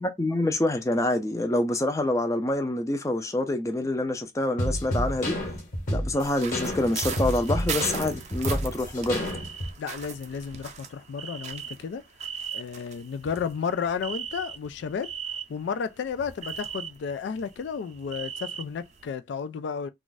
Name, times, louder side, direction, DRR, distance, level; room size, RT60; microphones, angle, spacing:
voice 1, 0.0-5.4 5.9-9.2, left 1 dB, 15° left, 0.4 m, -26 dB
sound 1, 4.6-9.7, equal, 45° left, 1.2 m, -29 dB
sound 2, 6.1-15.8 16.0-19.1, right 7 dB, 40° right, 0.5 m, -38 dB
voice 2, 9.8-12.0 12.5-15.1 15.5-19.9, left 6 dB, 80° left, 0.3 m, -32 dB
2.4 x 2.3 x 3.9 m
head